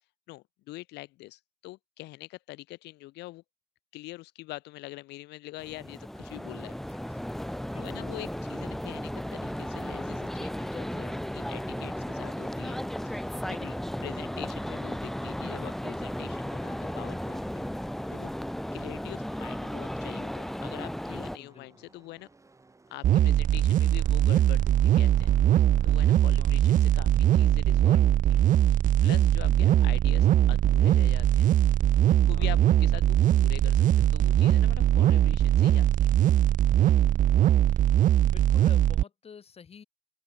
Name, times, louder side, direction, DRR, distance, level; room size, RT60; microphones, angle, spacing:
voice 1, 0.3-3.4 3.9-6.8 7.8-17.6 18.1-18.3 18.7-22.3 22.9-25.4 25.8-28.4 28.7-31.5 32.0-36.1, left 19 dB, 85° left, 1.9 m, -44 dB
sound 1, 5.6-21.4, equal, ahead, 0.4 m, -35 dB
voice 2, 6.7-7.3 7.7-8.0 15.4-15.8 20.9-21.9 26.2-26.7 29.6-30.0 32.2-32.6 36.8-37.2 37.7-39.8, left 6 dB, 35° left, 3.7 m, -50 dB
Car passing by / Race car auto racing, 19.1-29.2, right 3 dB, 20° right, 7.4 m, -61 dB
sound 2, 23.0-39.0, right 12 dB, 50° right, 0.5 m, -21 dB
open air
cardioid pair, 110°, 17 cm